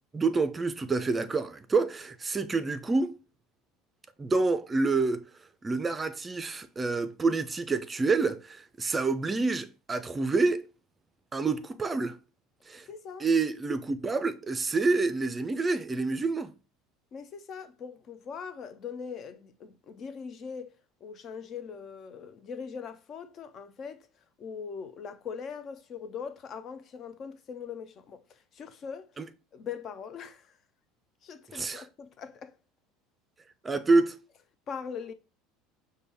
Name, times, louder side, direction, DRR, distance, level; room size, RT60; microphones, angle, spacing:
voice 1, 0.1-3.2 4.2-5.3 5.6-10.7 11.3-12.2 12.7-12.9 13.2-16.5 29.2-29.3 31.5-31.9 33.6-34.2, right 3 dB, 25° right, 0.4 m, -27 dB
voice 2, 12.9-13.3 17.1-20.7 21.0-24.0 24.4-29.1 29.5-30.5 31.2-32.5 34.7-35.1, left 6 dB, 45° left, 0.5 m, -41 dB
5.2 x 2.2 x 3.3 m
hypercardioid pair, 75°, 0 cm